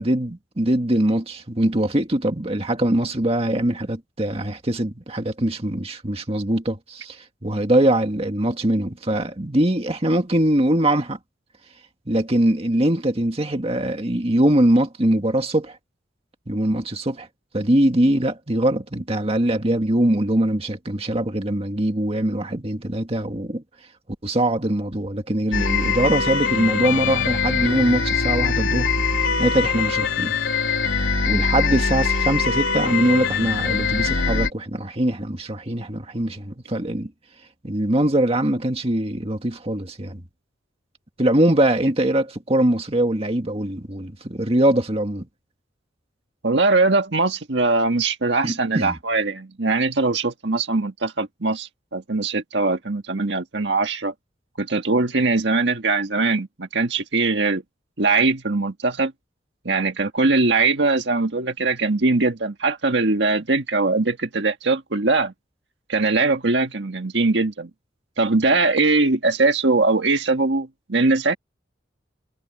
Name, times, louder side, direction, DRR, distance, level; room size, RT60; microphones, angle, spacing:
voice 1, 0.0-11.2 12.1-15.8 16.5-17.3 17.5-23.6 24.2-28.9 29.2-30.4 31.2-37.1 37.6-40.2 41.2-45.3 48.4-49.0, right 1 dB, 30° right, 1.9 m, -22 dB
sound 1, 25.5-34.5, left 5 dB, 80° left, 3.4 m, -22 dB
voice 2, 46.4-54.1 54.6-57.6 58.0-59.1 59.6-65.3 65.9-67.7 68.2-71.4, right 3 dB, 65° right, 1.7 m, -21 dB
head